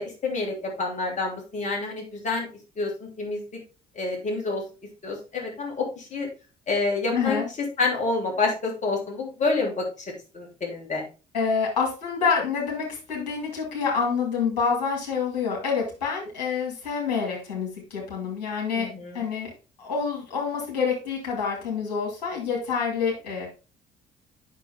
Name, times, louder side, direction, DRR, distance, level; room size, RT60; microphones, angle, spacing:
voice 1, 0.0-2.5 2.8-3.4 3.9-4.6 5.0-6.3 6.7-7.4 7.8-9.9 10.3-11.0 18.7-19.2, left 3 dB, 35° left, -1 dB, 3.0 m, -28 dB
voice 2, 7.1-7.5 11.3-18.9 19.1-19.5 19.8-23.5, left 5 dB, 70° left, -2 dB, 2.7 m, -27 dB
8.2 x 5.9 x 3.6 m, 0.33 s
figure-of-eight pair, 50°, 21 cm